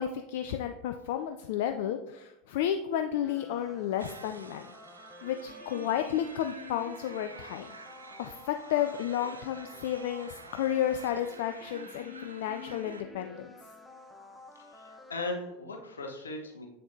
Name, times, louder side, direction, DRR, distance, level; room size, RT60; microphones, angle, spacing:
voice 1, 0.0-4.7 5.2-7.7 8.2-13.5, left 10 dB, 65° left, 7 dB, 0.4 m, -32 dB
sound 1, 3.2-15.1, left 3 dB, 5° left, 0.9 m, -51 dB
sound 2, 4.0-13.0, right 3 dB, 85° right, 0.4 m, -49 dB
voice 2, 14.5-16.7, left 2 dB, 85° left, 1 dB, 1.1 m, -38 dB
8.0 x 6.5 x 2.7 m, 0.92 s
figure-of-eight pair, 80°, 0 cm